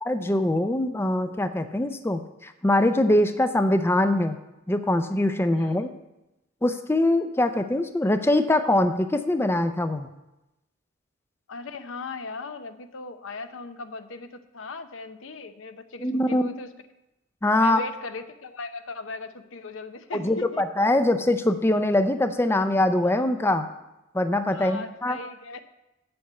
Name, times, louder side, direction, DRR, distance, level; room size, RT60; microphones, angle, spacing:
voice 1, 0.0-4.4 4.7-5.9 6.6-10.1 16.0-16.5 17.4-17.8 20.1-23.7 24.1-25.2, left 1 dB, 10° left, 9 dB, 0.4 m, -23 dB
voice 2, 5.5-5.9 11.5-16.7 17.6-20.6 23.0-23.1 24.5-25.6, left 3 dB, 80° left, 9 dB, 0.7 m, -38 dB
7.8 x 6.8 x 8.2 m, 0.94 s
head